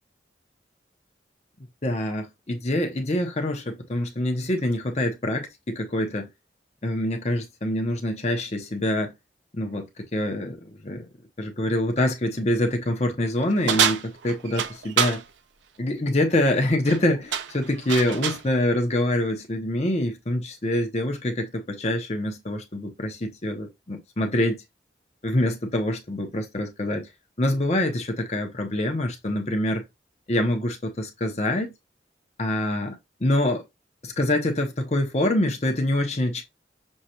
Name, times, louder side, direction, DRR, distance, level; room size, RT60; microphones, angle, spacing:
voice 1, 1.8-6.3 6.8-9.1 9.5-11.1 11.4-15.2 15.8-24.6 25.2-27.1 27.4-29.8 30.3-31.7 32.4-33.6 34.0-36.4, left 1 dB, 40° left, 0.8 m, -25 dB
sound 1, 13.7-15.2 16.7-17.0 17.3-18.5, right 8 dB, 90° right, 0.5 m, -25 dB
6.4 x 2.3 x 2.8 m
head